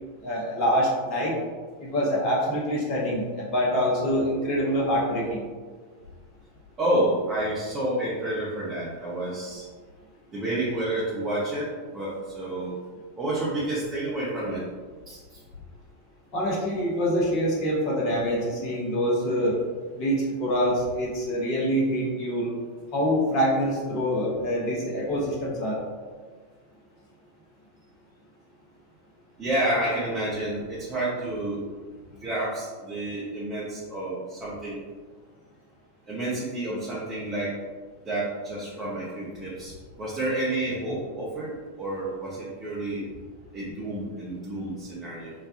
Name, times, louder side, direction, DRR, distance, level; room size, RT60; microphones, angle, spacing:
voice 1, 0.2-1.3 1.8-5.4 16.3-19.6 19.9-22.5 22.9-25.8, equal, 40° left, -3 dB, 0.8 m, -25 dB
voice 2, 6.8-9.6 10.3-12.8 13.2-14.6 15.1-15.2 29.4-31.6 32.1-34.8 36.1-37.5 38.0-39.7 40.0-43.0 43.5-45.3, right 1 dB, 25° right, -7 dB, 0.7 m, -29 dB
4.9 x 2.2 x 2.5 m, 1.5 s
figure-of-eight pair, 90°, 0 cm